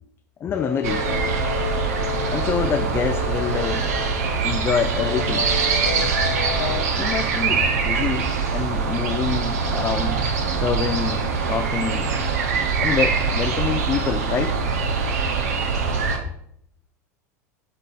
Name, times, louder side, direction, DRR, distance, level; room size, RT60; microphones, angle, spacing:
voice 1, 0.4-1.1 2.2-3.9 4.4-5.5 6.4-6.6 7.0-10.2 10.6-12.1 12.8-14.6, left 7 dB, 25° left, 7 dB, 0.4 m, -26 dB
sound 1, 0.5-6.9, left 6 dB, 80° left, 0.7 m, -31 dB
sound 2, 0.8-16.2, right 5 dB, 65° right, 1.0 m, -23 dB
7.4 x 3.9 x 4.1 m, 0.69 s
figure-of-eight pair, 85°, 9 cm